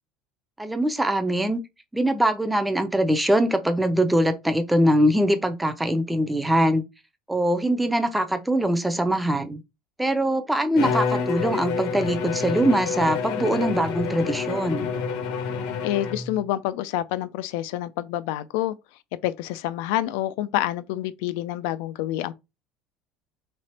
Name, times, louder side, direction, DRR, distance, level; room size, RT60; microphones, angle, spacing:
voice 1, 0.6-1.6 1.9-6.8 7.3-9.6 10.0-14.9, right 1 dB, 5° right, 0.4 m, -22 dB
Bowed string instrument, 10.8-16.4, left 6 dB, 60° left, 0.8 m, -28 dB
voice 2, 15.8-18.7 19.2-22.3, left 13 dB, 80° left, 0.3 m, -27 dB
3.3 x 2.9 x 4.1 m
cardioid pair, 180°, 0 cm